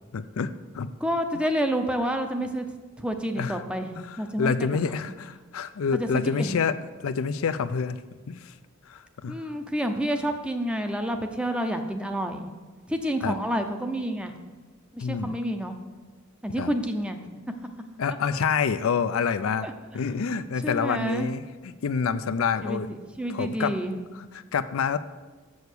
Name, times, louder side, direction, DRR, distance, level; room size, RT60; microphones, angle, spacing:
voice 1, 0.1-0.9 3.4-3.6 3.9-8.0 8.3-8.5 8.9-9.5 13.2-13.4 15.0-15.4 16.6-16.7 18.0-19.7 19.9-22.9 23.3-23.8 24.2-25.0, left 6 dB, 85° left, 12 dB, 0.4 m, -28 dB
voice 2, 1.0-2.7 3.0-4.5 4.9-5.0 5.9-6.6 9.3-12.5 12.9-14.3 14.9-15.8 16.4-17.3 19.6-19.7 20.6-21.3 22.6-24.0, equal, 5° right, 6 dB, 0.6 m, -29 dB
6.9 x 6.4 x 6.7 m, 1.3 s
head